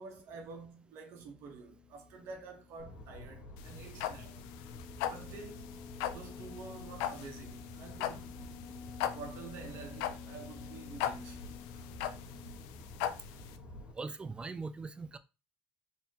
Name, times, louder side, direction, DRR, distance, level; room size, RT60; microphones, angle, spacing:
voice 1, 0.0-4.4 5.1-5.7 6.1-8.4 9.1-11.5, right 4 dB, 65° right, 1.2 m, -49 dB
sound 1, 1.1-13.9, left 6 dB, 35° left, 1.5 m, -52 dB
sound 2, 2.8-13.9, left 2 dB, 65° left, 1.2 m, -50 dB
sound 3, 3.6-13.5, left 11 dB, 85° left, 0.4 m, -38 dB
voice 2, 13.9-15.2, right 4 dB, 20° right, 0.5 m, -40 dB
4.2 x 3.6 x 2.9 m
supercardioid pair, 105°, 5 cm